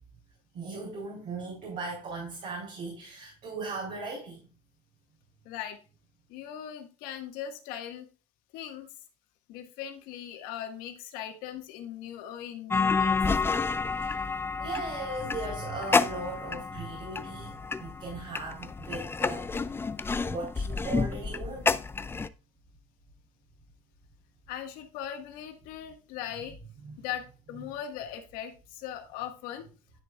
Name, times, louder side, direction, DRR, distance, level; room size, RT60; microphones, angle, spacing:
voice 1, 0.5-4.5 13.9-14.2 14.6-19.7 20.2-21.8 26.8-27.0, right 3 dB, 55° right, 4.0 m, -38 dB
voice 2, 5.5-5.8 6.3-8.1 8.5-8.9 9.5-13.2 24.5-26.6 27.0-29.7, left 10 dB, 75° left, 1.6 m, -39 dB
sound 1, 12.7-22.3, left 4 dB, 15° left, 0.4 m, -29 dB
10.5 x 6.3 x 2.4 m
supercardioid pair, 95°, 15 cm